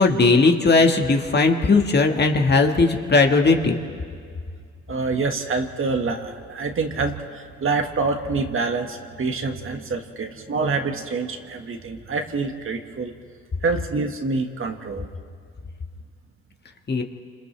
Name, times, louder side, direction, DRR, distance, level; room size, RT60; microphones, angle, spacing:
voice 1, 0.0-3.8 16.9-17.0, left 3 dB, 35° left, 4 dB, 1.6 m, -18 dB
voice 2, 4.9-13.1 13.6-15.1, right 4 dB, 45° right, 4 dB, 1.7 m, -26 dB
29.0 x 27.0 x 3.4 m, 2.1 s
cardioid pair, 90°, 30 cm